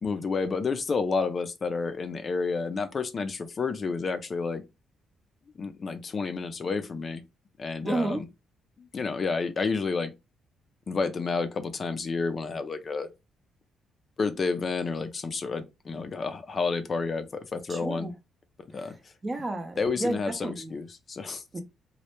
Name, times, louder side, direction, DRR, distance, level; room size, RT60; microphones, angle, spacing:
voice 1, 0.0-4.6 5.6-7.2 7.6-8.3 8.8-10.1 10.9-13.1 14.2-18.1 18.7-18.9 19.8-21.4, left 4 dB, 40° left, 0.3 m, -30 dB
voice 2, 7.8-8.2 17.7-18.1 18.8-18.9 19.2-20.7 21.5-21.6, right 2 dB, 25° right, 0.5 m, -31 dB
2.1 x 2.0 x 2.9 m
cardioid pair, 90°, 0 cm